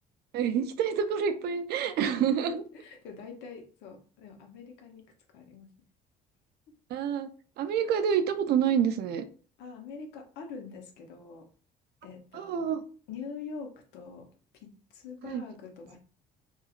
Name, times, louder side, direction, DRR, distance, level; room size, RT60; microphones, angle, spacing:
voice 1, 0.3-2.6 6.9-7.3 7.6-9.3 12.3-12.8 15.2-15.4, right 8 dB, 70° right, 9 dB, 0.4 m, -27 dB
voice 2, 2.4-5.1 5.3-5.7 9.6-11.5 12.0-12.7 13.1-14.3 14.5-16.0, left 5 dB, 85° left, 3 dB, 0.7 m, -44 dB
2.8 x 2.3 x 2.4 m, 0.40 s
cardioid pair, 110°, 17 cm